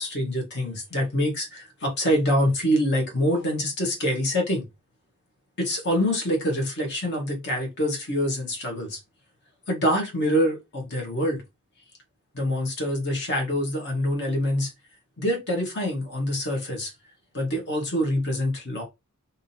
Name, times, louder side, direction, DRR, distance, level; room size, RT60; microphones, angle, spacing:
voice 1, 0.0-4.7 5.6-9.0 9.7-11.4 12.3-14.7 15.2-16.9 17.3-18.8, equal, 50° left, 1.3 m, -25 dB
3.6 x 2.7 x 2.7 m
head